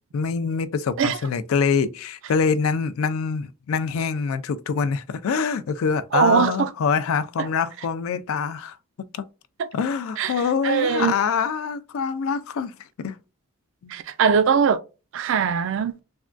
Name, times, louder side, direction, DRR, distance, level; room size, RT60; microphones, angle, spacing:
voice 1, 0.1-8.8 9.1-9.3 9.7-13.2 13.8-13.9, left 5 dB, 75° left, 0.3 m, -25 dB
voice 2, 6.1-6.7 9.6-9.7 10.2-10.3 10.6-11.1 13.9-14.8 15.1-16.0, right 6 dB, 60° right, 0.3 m, -21 dB
3.5 x 2.2 x 2.4 m
head